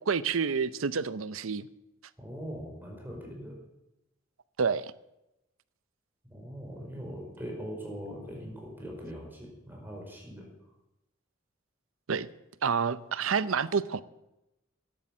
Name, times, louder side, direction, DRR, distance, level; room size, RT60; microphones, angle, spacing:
voice 1, 0.1-1.7 4.6-4.9 12.1-12.3 12.6-14.0, right 5 dB, 85° right, 0.7 m, -28 dB
voice 2, 2.2-3.6 6.3-10.5, equal, 10° right, 4.9 m, -41 dB
12.0 x 11.5 x 7.3 m
head